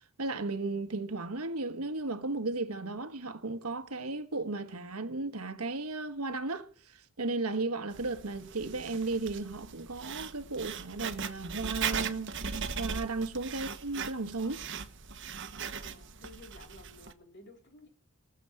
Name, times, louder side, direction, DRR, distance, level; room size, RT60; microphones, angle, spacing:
voice 1, 0.2-14.6, right 3 dB, 85° right, 1.4 m, -35 dB
Writing, 7.9-17.1, right 6 dB, 55° right, 1.2 m, -39 dB
voice 2, 15.8-17.9, left 2 dB, 50° left, 3.3 m, -54 dB
18.0 x 7.2 x 7.6 m
head